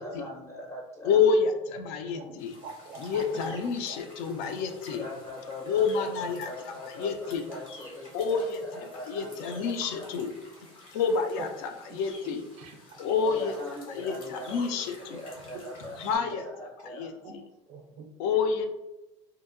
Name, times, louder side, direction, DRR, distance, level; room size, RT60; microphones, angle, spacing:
voice 1, 0.0-1.3 4.9-10.2 13.2-17.2, left 1 dB, 15° left, -3 dB, 0.5 m, -41 dB
voice 2, 1.0-2.6 3.0-5.0 5.7-6.5 7.0-7.4 8.1-8.6 9.1-10.3 11.0-12.4 13.0-13.5 14.0-15.2 16.0-16.4 16.8-17.4 18.2-18.7, left 5 dB, 70° left, 6 dB, 0.4 m, -28 dB
sound 1, 2.4-16.2, left 2 dB, 85° left, 1.0 m, -50 dB
voice 3, 2.6-3.5 3.9-4.0 4.4-4.5 12.2-13.0 15.0-15.1 16.1-16.2 17.2-17.3 17.7-18.1, right 4 dB, 45° right, 4 dB, 0.4 m, -45 dB
2.8 x 2.1 x 2.4 m, 0.98 s
supercardioid pair, 95°, 16 cm